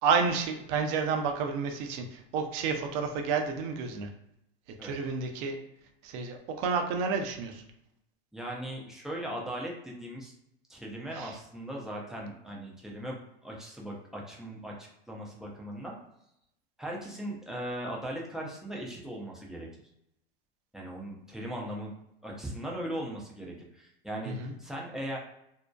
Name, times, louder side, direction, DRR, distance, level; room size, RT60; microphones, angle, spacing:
voice 1, 0.0-4.1 4.8-5.6 6.0-7.6 11.1-11.3 24.2-24.5, right 5 dB, 45° right, 4 dB, 0.6 m, -30 dB
voice 2, 8.3-10.3 10.7-16.0 16.8-19.7 20.7-21.9 22.2-25.2, right 1 dB, ahead, -3 dB, 0.4 m, -38 dB
2.6 x 2.1 x 2.2 m, 0.79 s
hypercardioid pair, 110°, 33 cm